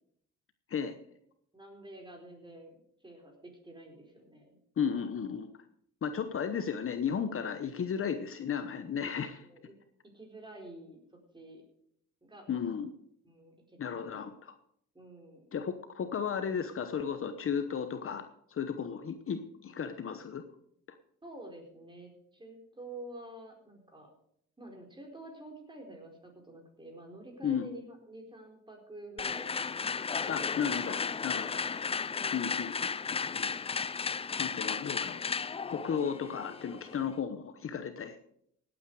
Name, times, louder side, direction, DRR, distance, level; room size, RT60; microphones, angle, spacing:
voice 1, 1.5-2.8 3.0-4.6 9.1-9.7 10.1-11.6 12.2-12.8 13.2-14.1 14.9-15.5 21.2-24.1 24.6-29.6 30.3-31.9 32.2-32.6, right 1 dB, 15° right, 2 dB, 4.5 m, -49 dB
voice 2, 4.8-5.5 6.0-9.4 12.5-12.9 13.8-14.5 15.5-20.4 27.4-27.7 30.3-31.7 32.3-32.7 33.3-33.5 34.4-35.2 35.7-38.1, left 7 dB, 45° left, 9 dB, 1.0 m, -34 dB
sound 1, 29.2-37.1, left 5 dB, 20° left, 0.4 m, -34 dB
17.0 x 8.9 x 4.8 m, 0.69 s
cardioid pair, 90°, 30 cm